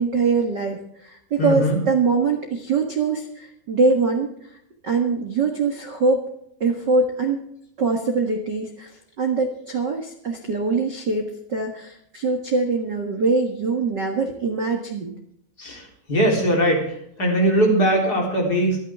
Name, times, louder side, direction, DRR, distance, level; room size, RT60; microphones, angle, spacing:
voice 1, 0.0-4.3 4.8-6.2 6.6-7.4 7.8-15.1, right 4 dB, 65° right, 3 dB, 1.0 m, -23 dB
voice 2, 1.4-1.8 15.6-18.8, right 1 dB, 25° left, 0 dB, 4.0 m, -20 dB
25.5 x 9.6 x 3.6 m, 0.71 s
omnidirectional pair, 4.5 m